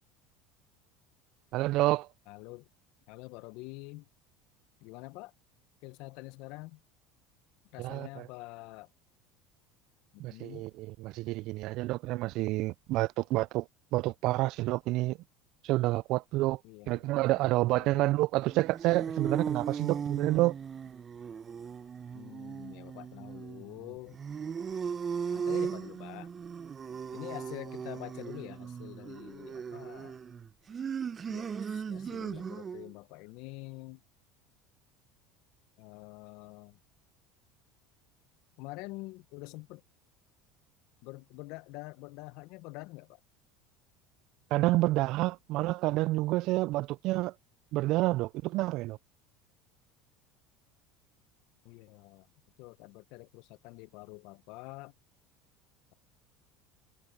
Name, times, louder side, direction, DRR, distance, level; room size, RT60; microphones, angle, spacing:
voice 1, 1.5-2.1 7.8-8.3 10.2-13.7 13.9-15.2 15.6-16.6 16.9-20.6 44.5-47.3 47.7-49.0, right 18 dB, 60° right, 0.4 m, -29 dB
voice 2, 2.3-2.7 3.1-4.1 4.8-5.3 5.8-6.8 7.7-8.9 10.1-10.7 16.6-17.4 17.7-18.1 22.1-24.2 25.3-26.3 27.1-30.2 31.3-34.0 35.8-36.8 38.6-39.8 41.0-43.2 51.6-52.3 52.6-54.9, left 23 dB, 65° left, 0.9 m, -46 dB
sound 1, 18.4-32.9, right 6 dB, 35° right, 0.9 m, -37 dB
hypercardioid pair, 85°, 0 cm